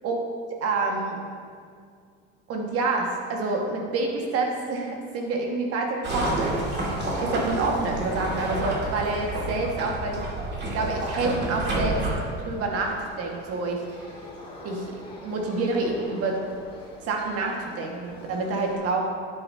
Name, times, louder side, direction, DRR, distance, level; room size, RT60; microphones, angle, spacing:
voice 1, 0.6-1.2 2.5-6.6 6.8-6.9 7.2-10.2 10.6-12.0 12.4-14.1 14.6-16.4 17.0-19.1, right 3 dB, 55° right, 1 dB, 1.7 m, -27 dB
sound 1, 6.0-12.1, right 2 dB, 35° right, 2.2 m, -29 dB
sound 2, 11.9-18.7, left 1 dB, 20° left, 2.1 m, -44 dB
9.8 x 8.3 x 2.8 m, 2.2 s
supercardioid pair, 95°, 29 cm